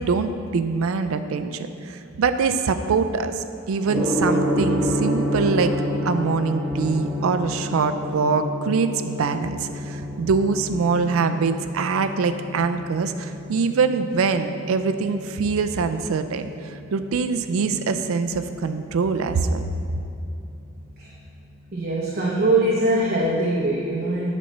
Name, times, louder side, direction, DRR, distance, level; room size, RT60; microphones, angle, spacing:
voice 1, 0.0-5.7 6.0-19.6, right 4 dB, 80° right, 9 dB, 0.4 m, -24 dB
Gong, 3.9-22.9, equal, 15° right, 1.1 m, -31 dB
voice 2, 21.7-24.3, right 1 dB, 45° right, -5 dB, 0.9 m, -22 dB
8.5 x 4.2 x 6.4 m, 2.7 s
head